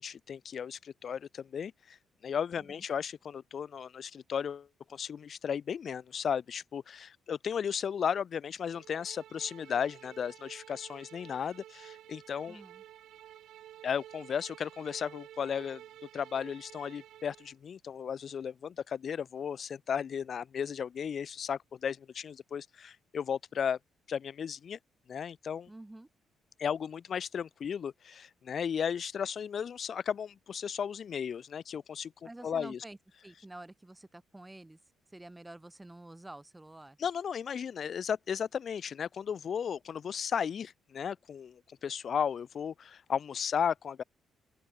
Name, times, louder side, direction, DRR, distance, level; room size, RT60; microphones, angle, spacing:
voice 1, 0.0-2.0 2.2-12.6 13.8-15.8 16.1-23.8 24.1-24.8 25.1-25.7 26.6-32.1 32.4-32.8 37.0-44.0, left 7 dB, 55° left, 1.0 m, -35 dB
sound 1, 8.7-17.5, right 12 dB, 80° right, 8.0 m, -52 dB
voice 2, 12.5-12.8 25.7-26.1 32.2-33.0 33.2-34.8 35.1-37.0, right 1 dB, 10° right, 6.5 m, -49 dB
open air
cardioid pair, 90°, 0 cm